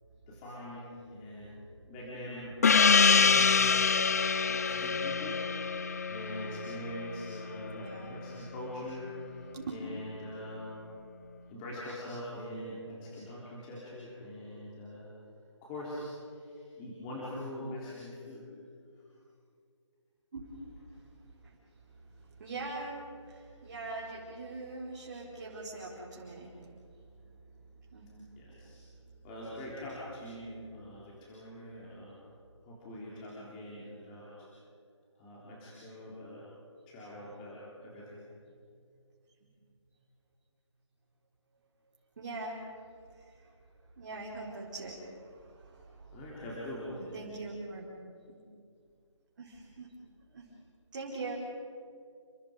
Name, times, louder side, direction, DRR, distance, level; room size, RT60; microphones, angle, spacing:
voice 1, 0.3-1.5 1.8-4.2 4.4-9.4 9.7-10.8 11.5-15.1 15.6-18.6 19.0-19.1 28.4-28.8 29.2-32.2 32.6-34.5 35.2-36.5 36.9-38.2 46.1-47.2, left 1 dB, 15° left, -7 dB, 3.8 m, -43 dB
Gong, 2.6-7.7, left 5 dB, 30° left, 0.6 m, -25 dB
voice 2, 7.8-8.1 9.5-9.7 20.3-20.6 22.3-22.9 23.2-26.6 27.9-28.1 42.2-42.6 44.0-45.1 45.4-46.1 47.0-47.9 48.3-48.4 49.4-49.9 50.3-50.5 50.9-51.3, right 3 dB, 40° right, -5 dB, 4.8 m, -42 dB
30.0 x 26.5 x 5.2 m, 2.3 s
figure-of-eight pair, 165°, 16 cm